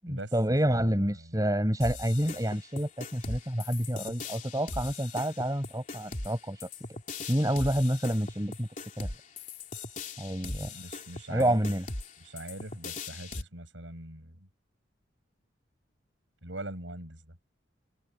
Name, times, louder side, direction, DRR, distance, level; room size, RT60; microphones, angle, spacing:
voice 1, 0.0-6.7 7.3-8.7 9.0-9.1 10.2-10.7 11.3-11.9, equal, 20° right, 8.0 m, -28 dB
voice 2, 0.7-1.4 2.3-2.4 10.7-11.7 12.2-14.5 16.4-17.4, right 1 dB, 75° right, 8.0 m, -42 dB
sound 1, 1.8-13.4, left 3 dB, 40° left, 3.4 m, -40 dB
head